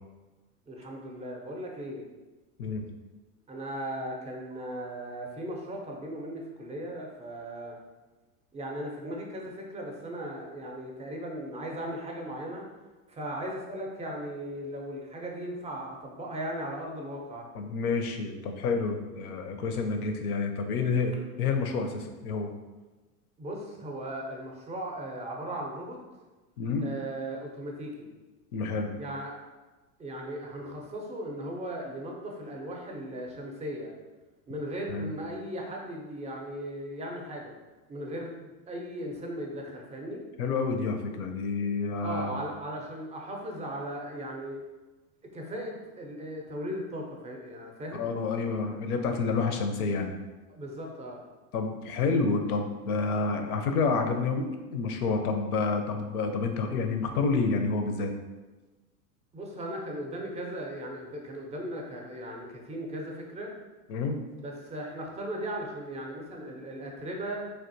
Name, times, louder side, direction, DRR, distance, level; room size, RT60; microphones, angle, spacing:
voice 1, 0.7-2.0 3.5-7.8 8.5-12.7 13.1-17.5 23.4-26.0 26.8-28.1 28.9-29.4 30.0-33.9 34.5-37.5 37.9-40.3 42.0-44.6 45.3-48.1 50.5-51.2 59.3-63.6 64.4-67.4, right 1 dB, 15° right, 0 dB, 0.4 m, -37 dB
voice 2, 17.5-22.5 26.6-26.9 28.5-28.9 34.9-35.1 40.4-42.3 47.9-50.2 51.5-58.1 63.9-64.2, left 4 dB, 75° left, 5 dB, 0.6 m, -29 dB
3.4 x 2.5 x 2.6 m, 1.2 s
hypercardioid pair, 90°, 45 cm